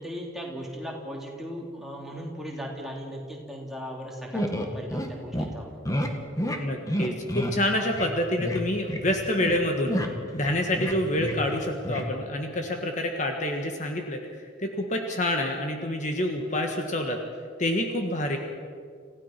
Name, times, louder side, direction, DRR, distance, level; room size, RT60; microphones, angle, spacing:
voice 1, 0.0-5.8, equal, ahead, -2 dB, 3.2 m, -37 dB
sound 1, 4.3-5.1 5.3-5.5 5.9-6.1 6.4-6.6 6.9-7.6 7.9-8.1 8.4-8.6 8.9-9.6 9.9-11.6 11.8-12.1, equal, 15° left, 1.7 m, -29 dB
voice 2, 6.6-9.9 10.3-17.2 17.6-18.4, left 1 dB, 40° left, 3 dB, 1.5 m, -27 dB
27.5 x 16.0 x 6.0 m, 2.2 s
head